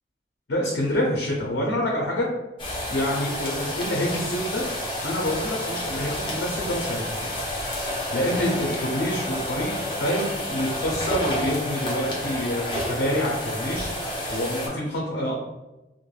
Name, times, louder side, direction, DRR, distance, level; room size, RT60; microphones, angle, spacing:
voice 1, 0.5-2.3 2.9-4.6 5.0-7.4 8.1-9.7 10.0-13.9 14.3-15.3, equal, 80° left, -2 dB, 0.5 m, -27 dB
sound 1, 2.6-14.7, left 1 dB, 30° left, 0.6 m, -30 dB
3.1 x 2.1 x 2.2 m, 1.0 s
head